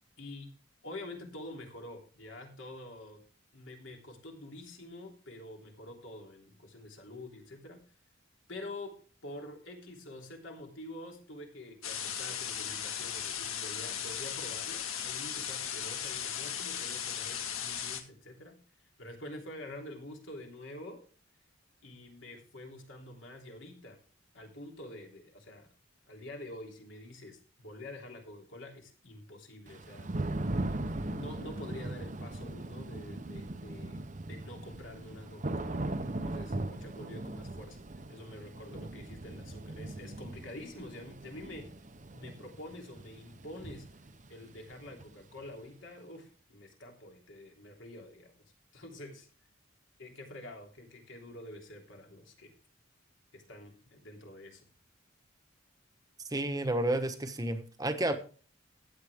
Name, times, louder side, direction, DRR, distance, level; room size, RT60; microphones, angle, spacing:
voice 1, 0.2-0.5 0.8-3.2 3.5-7.8 8.5-8.9 9.2-18.5 19.0-21.0 21.8-24.0 24.3-25.7 26.1-30.1 30.7-37.8 38.1-41.7 42.1-43.9 44.3-48.3 48.7-49.3 50.0-52.5 53.3-54.6, left 1 dB, 65° left, 2 dB, 3.2 m, -47 dB
sound 1, 11.8-18.0, left 8 dB, 90° left, 1.7 m, -37 dB
Thunder / Rain, 29.7-45.4, right 2 dB, 35° right, 0.7 m, -39 dB
voice 2, 56.3-58.1, right 1 dB, 15° right, 8 dB, 1.1 m, -31 dB
15.0 x 8.9 x 3.6 m, 0.39 s
head